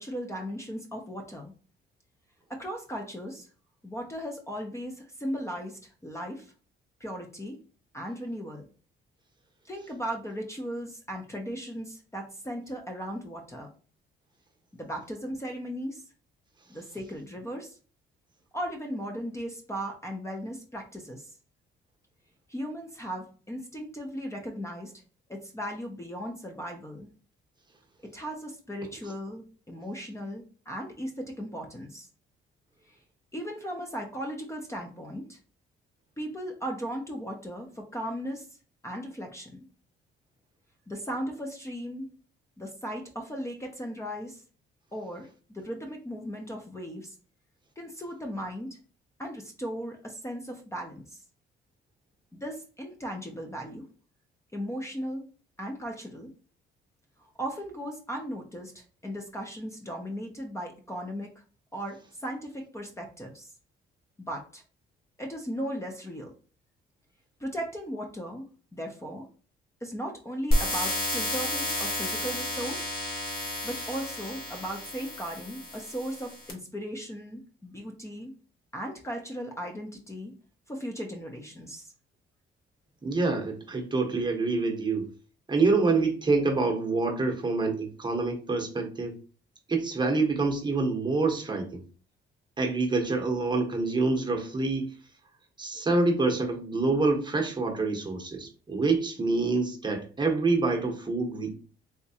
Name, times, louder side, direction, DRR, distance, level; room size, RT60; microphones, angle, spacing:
voice 1, 0.0-1.5 2.5-3.5 3.8-6.5 7.0-7.6 7.9-8.7 9.6-13.7 14.7-16.1 16.7-17.8 18.5-21.4 22.5-24.9 25.3-27.1 28.0-32.1 32.9-33.0 33.3-35.4 36.2-38.6 38.8-39.6 40.9-42.1 42.6-44.4 44.9-47.2 47.8-48.8 49.2-51.2 52.3-53.9 54.5-55.3 55.6-56.3 57.2-61.4 61.7-63.5 64.2-64.6 65.2-66.3 67.4-69.3 69.8-72.9 73.6-78.3 78.7-80.4 80.7-81.9, equal, 15° left, 1 dB, 0.7 m, -37 dB
sound 1, 70.5-76.5, left 1 dB, 50° left, 1.5 m, -31 dB
voice 2, 83.0-85.1 85.5-89.2 89.7-91.8 92.6-94.9 95.6-101.5, right 3 dB, 20° right, 2 dB, 1.0 m, -26 dB
3.6 x 2.9 x 2.8 m, 0.38 s
cardioid pair, 90°, 20 cm